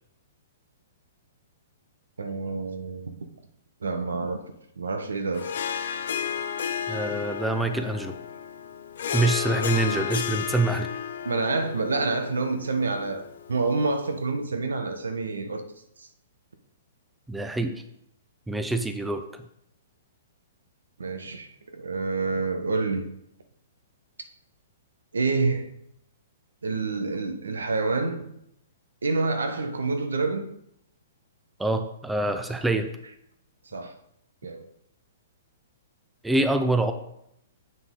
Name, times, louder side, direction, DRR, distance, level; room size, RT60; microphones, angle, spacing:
voice 1, 2.2-3.3 3.8-4.4 4.8-5.5 11.2-13.2 13.5-15.6 16.0-16.1 21.0-23.0 25.1-25.7 26.6-28.3 29.0-30.5 33.7-33.9 34.4-34.7, right 3 dB, 80° right, 1.0 m, -27 dB
Harp, 5.3-14.0, left 8 dB, 65° left, 0.6 m, -32 dB
voice 2, 6.9-8.2 9.1-10.9 17.3-17.8 18.5-19.4 31.6-32.9 36.2-36.9, right 2 dB, 5° right, 0.6 m, -25 dB
7.8 x 5.8 x 3.8 m
hypercardioid pair, 120°, 0 cm